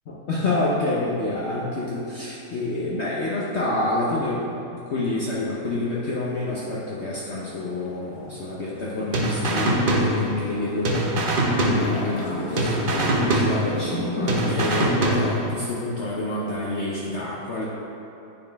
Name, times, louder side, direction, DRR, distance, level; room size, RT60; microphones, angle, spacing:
voice 1, 0.1-17.7, left 2 dB, 60° left, -6 dB, 0.7 m, -28 dB
sound 1, 7.4-15.1, left 1 dB, 80° left, 1.4 m, -34 dB
sound 2, 9.1-10.6 10.8-12.3 12.6-14.0 14.3-15.6, right 1 dB, 50° right, 0.6 m, -23 dB
8.5 x 4.2 x 3.4 m, 2.9 s
omnidirectional pair, 1.8 m